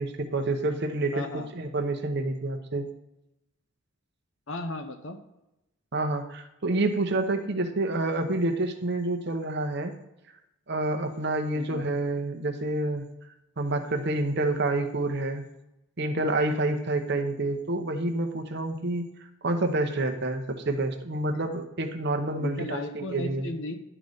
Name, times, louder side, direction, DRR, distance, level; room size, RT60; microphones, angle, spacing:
voice 1, 0.0-2.9 5.9-9.9 10.7-13.0 13.6-15.4 16.0-19.1 19.4-23.5, right 2 dB, 50° right, 5 dB, 0.8 m, -28 dB
voice 2, 1.1-1.5 4.5-5.2 11.5-11.9 22.4-23.7, left 2 dB, 60° left, 7 dB, 0.8 m, -35 dB
11.0 x 4.0 x 4.9 m, 0.90 s
head